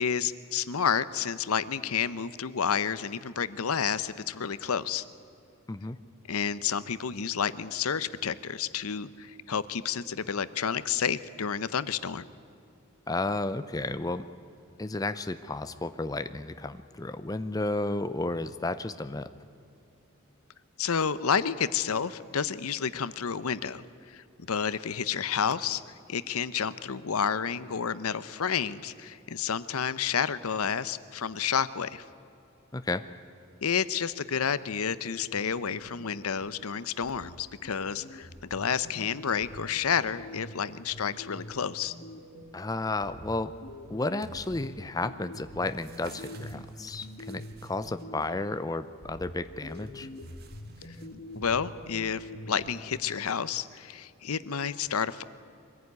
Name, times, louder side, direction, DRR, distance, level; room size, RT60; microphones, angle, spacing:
voice 1, 0.0-5.0 6.3-12.3 20.8-25.8 26.1-32.0 33.6-41.9 51.3-55.2, left 7 dB, 85° left, 15 dB, 0.7 m, -30 dB
voice 2, 13.1-14.2 14.8-19.3 32.7-33.0 42.5-43.5 43.9-50.1, left 2 dB, 15° left, 11 dB, 0.5 m, -32 dB
sound 1, 35.0-36.6 37.0-42.6 43.0-48.6 49.0-53.0, left 1 dB, 60° left, 1.8 m, -45 dB
sound 2, 43.9-44.8 45.3-48.3 49.6-51.4 52.7-52.8, right 4 dB, 45° right, 1.6 m, -55 dB
23.0 x 16.0 x 9.5 m, 2.6 s
head